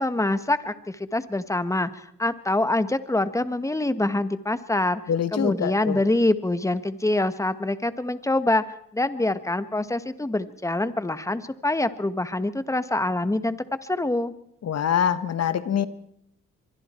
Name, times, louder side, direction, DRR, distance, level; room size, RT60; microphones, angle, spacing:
voice 1, 0.0-5.0 5.3-8.6 8.9-14.3, left 2 dB, 10° left, 12 dB, 1.5 m, -25 dB
voice 2, 5.1-6.0 14.6-15.9, left 8 dB, 55° left, 13 dB, 1.6 m, -24 dB
24.5 x 23.0 x 4.5 m, 0.70 s
cardioid pair, 90°, 30 cm